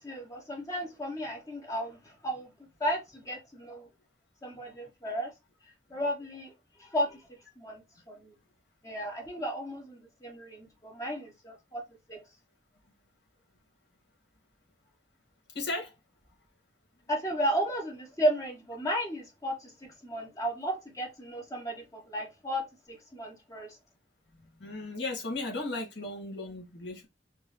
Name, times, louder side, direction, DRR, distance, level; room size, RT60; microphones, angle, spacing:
voice 1, 0.0-2.5 2.8-3.9 4.4-5.3 5.9-6.5 6.8-7.2 7.6-8.3 8.8-11.8 12.1-12.2 17.1-19.7 20.0-22.6 22.9-23.8, equal, 20° left, 0.9 m, -34 dB
voice 2, 15.5-15.9 24.3-27.1, left 2 dB, 80° left, 2.0 m, -36 dB
4.5 x 2.4 x 3.2 m
head